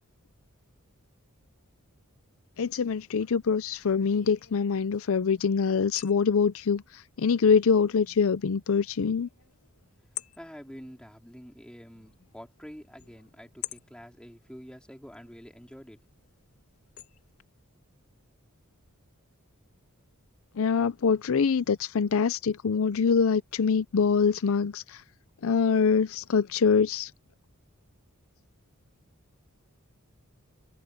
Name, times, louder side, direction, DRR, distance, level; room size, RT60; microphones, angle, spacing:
voice 1, 2.6-9.3 20.6-25.0 25.4-27.1, left 6 dB, 65° left, 0.5 m, -24 dB
sound 1, 2.8-17.4, left 13 dB, 90° left, 2.6 m, -49 dB
voice 2, 10.4-16.0, equal, 5° left, 4.1 m, -47 dB
head